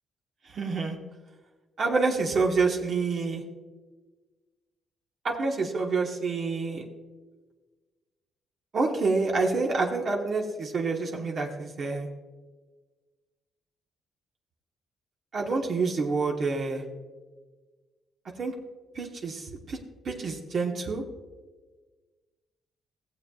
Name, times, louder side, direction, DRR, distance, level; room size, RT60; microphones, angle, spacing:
voice 1, 0.5-1.0 1.8-3.4 5.2-6.8 8.7-12.1 15.3-16.8 18.4-18.5 18.9-19.8 20.0-21.0, right 4 dB, 50° right, 1 dB, 1.3 m, -27 dB
18.5 x 7.4 x 2.4 m, 1.3 s
cardioid pair, 90°, 0 cm